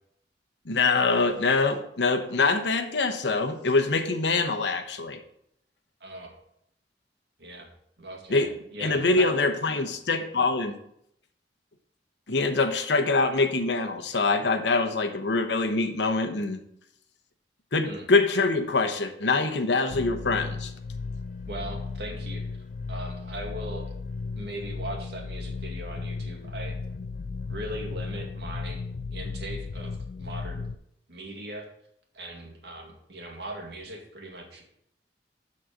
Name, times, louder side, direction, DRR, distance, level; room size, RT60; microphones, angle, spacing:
voice 1, 0.7-5.2 8.3-8.5 8.8-10.7 12.3-16.6 17.7-20.7, left 3 dB, 80° left, 7 dB, 1.0 m, -24 dB
voice 2, 6.0-6.4 7.4-7.7 8.0-9.3 17.8-18.1 21.5-24.0 24.3-26.8 27.5-28.8 29.1-30.7 31.1-31.7 32.1-34.7, right 1 dB, 70° right, 1 dB, 2.2 m, -39 dB
sound 1, 19.9-30.8, left 4 dB, 45° left, 0.4 m, -35 dB
12.5 x 4.3 x 5.1 m, 0.73 s
head